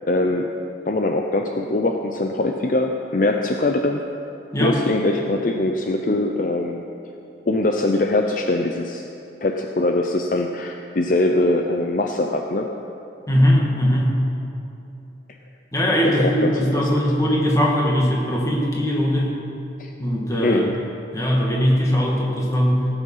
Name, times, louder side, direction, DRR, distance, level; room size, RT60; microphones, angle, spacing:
voice 1, 0.1-0.5 0.9-4.0 4.6-6.8 7.5-9.0 9.4-12.7 16.0-16.9 19.8-19.9 20.4-20.7, left 2 dB, 45° left, 3 dB, 0.6 m, -22 dB
voice 2, 13.3-14.2 15.7-19.3 20.0-20.7 21.1-22.9, equal, 15° left, -3 dB, 2.0 m, -20 dB
17.0 x 9.0 x 5.7 m, 2.8 s
head